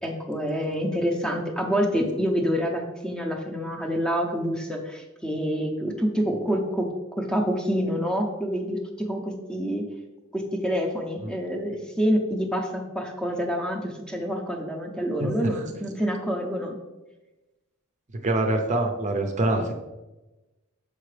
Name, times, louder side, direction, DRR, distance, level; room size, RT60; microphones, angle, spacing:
voice 1, 0.0-6.9 7.2-9.8 10.3-16.7, equal, 5° left, 2 dB, 0.7 m, -27 dB
voice 2, 18.2-19.7, right 2 dB, 35° right, 4 dB, 0.7 m, -24 dB
6.7 x 5.0 x 3.3 m, 1.1 s
head